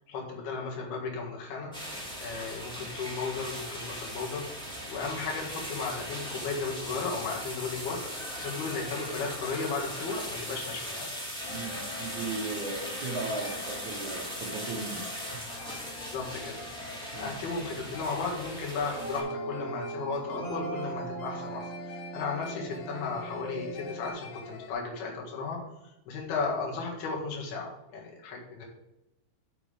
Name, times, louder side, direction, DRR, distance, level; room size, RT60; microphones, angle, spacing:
voice 1, 0.0-1.7 2.2-4.4 4.9-8.0 8.3-11.1 16.1-28.6, left 4 dB, 65° left, -1 dB, 3.4 m, -35 dB
sound 1, 1.7-19.2, equal, 5° left, 0.7 m, -39 dB
sound 2, 10.5-10.6 11.0-11.1 11.4-24.7, left 4 dB, 85° left, 1.7 m, -45 dB
voice 2, 11.5-15.1 15.3-15.4 17.1-17.3, right 3 dB, 70° right, -1 dB, 1.8 m, -36 dB
sound 3, 18.9-24.1, right 2 dB, 25° right, 1.9 m, -39 dB
7.3 x 7.0 x 5.0 m, 0.92 s
omnidirectional pair, 5.2 m